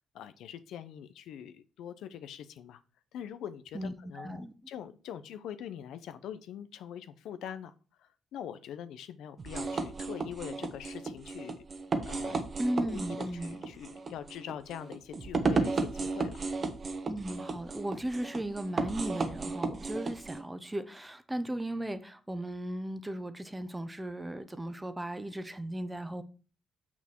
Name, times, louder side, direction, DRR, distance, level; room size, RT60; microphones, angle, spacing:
voice 1, 0.0-2.8 3.1-7.7 8.0-11.6 12.1-12.4 12.8-16.5, left 9 dB, 80° left, 0.6 m, -43 dB
voice 2, 3.7-4.5 12.6-13.6 17.1-26.2, right 1 dB, 10° right, 0.8 m, -36 dB
sound 1, 9.4-20.4, right 3 dB, 40° right, 1.1 m, -34 dB
6.1 x 6.0 x 4.4 m
cardioid pair, 90°, 0 cm